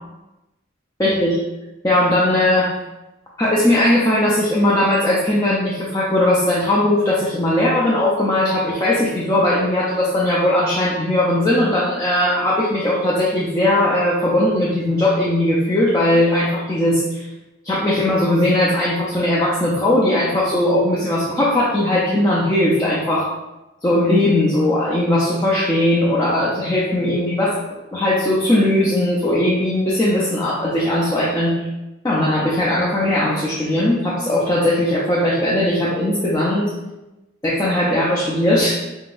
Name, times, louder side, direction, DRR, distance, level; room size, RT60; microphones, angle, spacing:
voice 1, 1.0-1.4 1.8-2.7 3.4-17.2 17.6-23.3 23.8-27.6 27.9-31.6 32.0-36.7 37.4-38.7, left 1 dB, 15° left, -7 dB, 0.6 m, -18 dB
4.6 x 3.7 x 2.5 m, 1.0 s
head